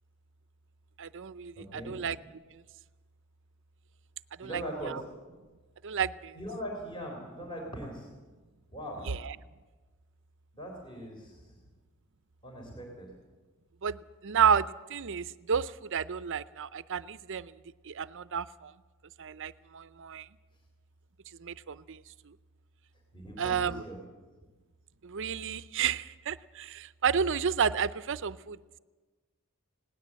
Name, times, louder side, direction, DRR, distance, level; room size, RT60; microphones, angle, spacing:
voice 1, 1.0-2.2 4.4-5.0 5.8-6.4 9.1-9.3 13.8-17.5 17.8-18.7 19.2-20.3 21.4-22.0 23.4-23.8 25.0-28.6, right 7 dB, 60° right, 15 dB, 0.6 m, -31 dB
voice 2, 1.6-2.0 4.4-4.9 6.4-8.1 8.7-9.1 10.5-11.6 12.4-13.1 23.1-24.0, equal, 25° left, 1 dB, 3.6 m, -40 dB
20.0 x 18.0 x 7.5 m, 1.3 s
head